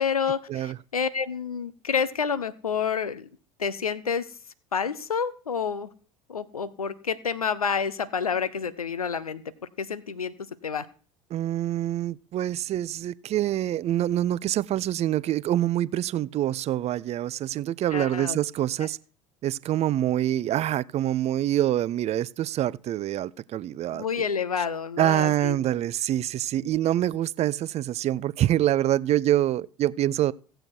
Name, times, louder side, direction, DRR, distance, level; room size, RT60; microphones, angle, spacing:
voice 1, 0.0-3.3 3.6-4.3 4.7-5.9 6.3-9.4 9.8-10.3 10.6-10.9 17.9-18.4 18.8-18.9 23.9-25.6, left 6 dB, 90° left, 0.7 m, -29 dB
voice 2, 11.3-19.0 19.4-24.0 25.0-30.3, right 12 dB, 35° right, 0.5 m, -25 dB
16.0 x 7.7 x 4.7 m
figure-of-eight pair, 70°, 18 cm